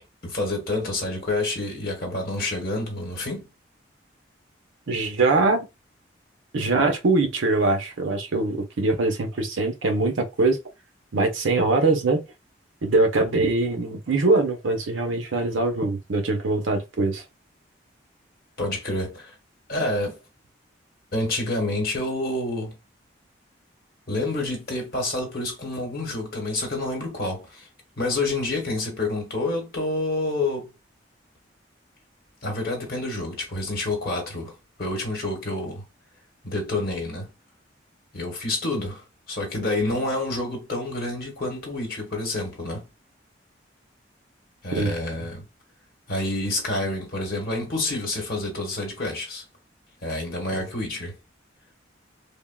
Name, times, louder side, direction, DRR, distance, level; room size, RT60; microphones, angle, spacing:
voice 1, 0.2-3.4 18.6-19.3 19.7-20.2 21.1-22.7 24.1-27.7 28.0-30.7 32.4-34.5 34.8-35.8 36.4-37.3 38.1-42.8 44.6-45.4 46.1-49.4 50.0-51.2, left 2 dB, 50° left, 1.2 m, -28 dB
voice 2, 4.9-5.7 6.5-10.6 11.1-12.2 12.8-17.2 44.7-45.3 50.5-50.6, right 3 dB, 90° right, 0.7 m, -23 dB
3.5 x 2.1 x 2.2 m
head